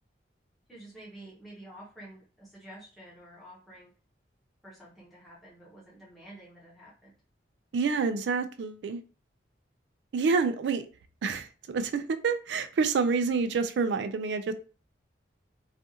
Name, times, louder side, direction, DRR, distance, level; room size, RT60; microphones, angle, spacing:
voice 1, 0.7-3.9 4.6-7.1, right 1 dB, ahead, -7 dB, 0.8 m, -49 dB
voice 2, 7.7-9.0 10.1-10.9 11.2-14.5, right 4 dB, 65° right, 10 dB, 0.3 m, -28 dB
2.5 x 2.4 x 2.7 m, 0.36 s
head